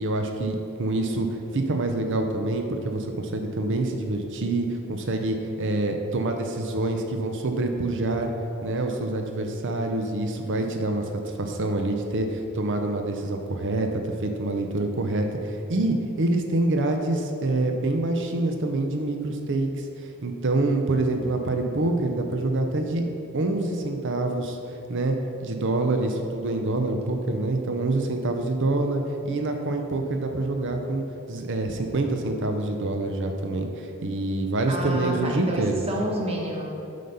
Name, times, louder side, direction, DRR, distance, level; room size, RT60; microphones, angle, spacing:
voice 1, 0.0-8.3 8.6-23.1 23.3-24.6 24.9-35.8, right 2 dB, 55° right, 4 dB, 0.6 m, -26 dB
voice 2, 34.7-36.7, equal, 25° right, -2 dB, 1.3 m, -29 dB
7.8 x 5.1 x 5.5 m, 2.8 s
head